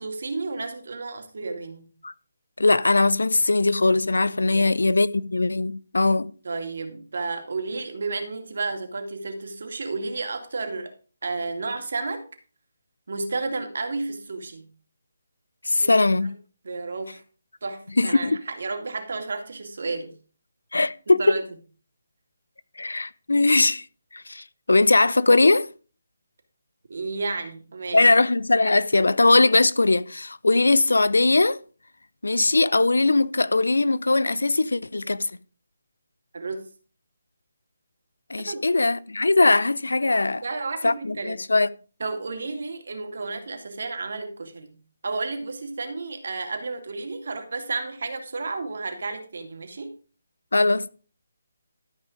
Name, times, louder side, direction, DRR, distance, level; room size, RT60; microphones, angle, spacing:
voice 1, 0.0-1.9 4.5-4.8 6.4-10.9 11.2-12.2 13.1-14.7 15.8-16.0 16.6-17.2 17.6-20.1 21.1-21.4 26.9-28.0 36.3-36.6 38.5-38.6 40.4-41.4 42.0-44.7 45.0-49.9, right 3 dB, 60° right, 2.3 m, -32 dB
voice 2, 2.6-6.3 15.6-16.3 18.0-18.4 20.7-21.4 22.8-23.8 24.1-25.7 27.9-31.6 32.2-35.3 38.3-40.4 40.8-41.7 50.5-50.9, left 2 dB, 80° left, 0.6 m, -20 dB
13.0 x 5.4 x 5.1 m
figure-of-eight pair, 150°, 0 cm